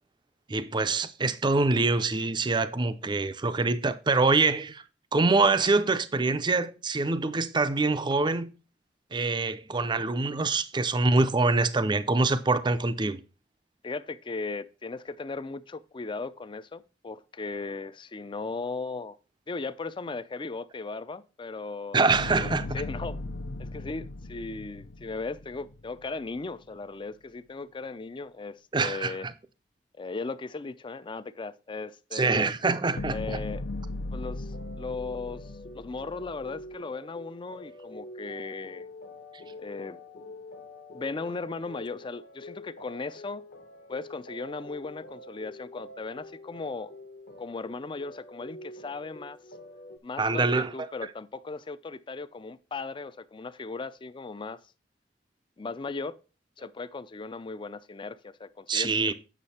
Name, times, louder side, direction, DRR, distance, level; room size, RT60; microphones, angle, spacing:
voice 1, 0.5-4.8 5.1-8.5 9.1-13.2 21.9-22.8 28.7-29.3 32.1-33.4 50.2-50.9 58.7-59.1, right 3 dB, 25° right, 0.5 m, -25 dB
voice 2, 13.8-19.2 19.5-23.2 23.6-29.3 30.0-32.5 33.1-33.6 34.1-38.9 39.6-40.0 40.9-43.4 43.9-46.9 47.4-49.4 50.0-50.5 50.7-54.6 55.6-56.2 56.6-59.1, left 3 dB, 25° left, 0.4 m, -37 dB
sound 1, 22.1-26.4 33.0-36.7, left 2 dB, 75° left, 0.6 m, -38 dB
sound 2, 34.3-50.0, left 1 dB, 55° left, 1.1 m, -46 dB
8.2 x 6.3 x 4.2 m
head